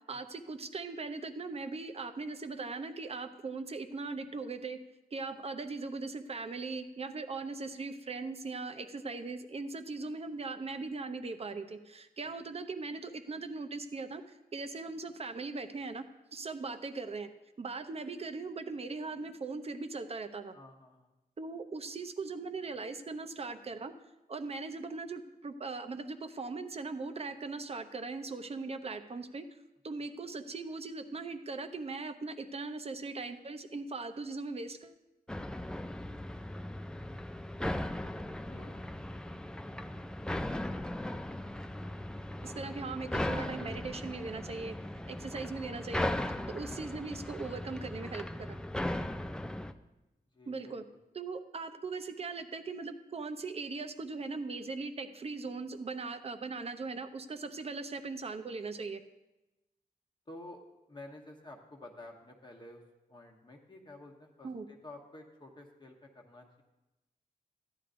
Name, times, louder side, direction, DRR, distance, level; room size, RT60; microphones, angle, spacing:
voice 1, 0.1-4.8 5.1-14.2 14.5-16.0 16.3-17.3 17.6-20.5 21.4-23.9 24.3-29.5 29.8-35.0 42.4-44.8 45.1-46.1 46.5-48.6 50.5-50.8 51.1-59.0 64.4-64.6, right 3 dB, 40° right, 8 dB, 0.6 m, -39 dB
voice 2, 20.5-21.1 38.5-38.8 50.3-50.7 60.3-60.6 60.9-62.8 63.1-66.6, left 2 dB, 30° left, 1 dB, 1.0 m, -51 dB
sound 1, 35.3-49.7, left 1 dB, 5° left, 0.3 m, -38 dB
14.0 x 10.0 x 2.6 m, 1.0 s
wide cardioid pair, 160°, 16 cm